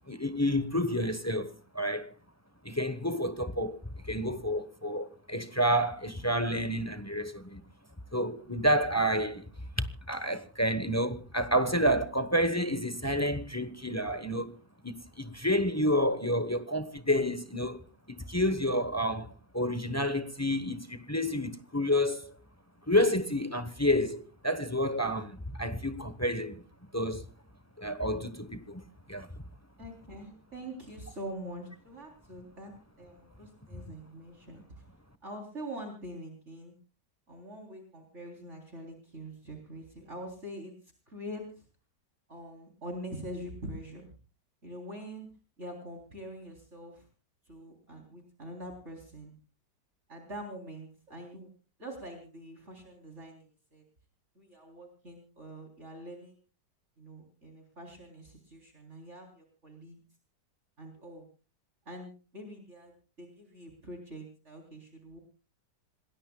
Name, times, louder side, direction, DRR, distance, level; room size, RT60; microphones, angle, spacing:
voice 1, 0.1-2.1 2.6-3.8 4.1-7.6 8.1-9.5 9.8-14.6 14.8-17.8 18.1-22.3 22.9-26.6 26.9-27.2 27.8-28.8 29.1-29.3, equal, 10° left, 0.8 m, -29 dB
voice 2, 29.8-34.7 35.2-36.8 37.3-40.8 41.1-41.7 42.3-44.1 44.6-45.3 45.6-47.0 47.5-49.4 50.1-51.5 51.8-53.8 54.4-56.4 57.0-60.0 60.8-61.3 61.9-65.2, right 1 dB, 40° right, 4.0 m, -44 dB
27.0 x 20.0 x 2.3 m
omnidirectional pair, 1.8 m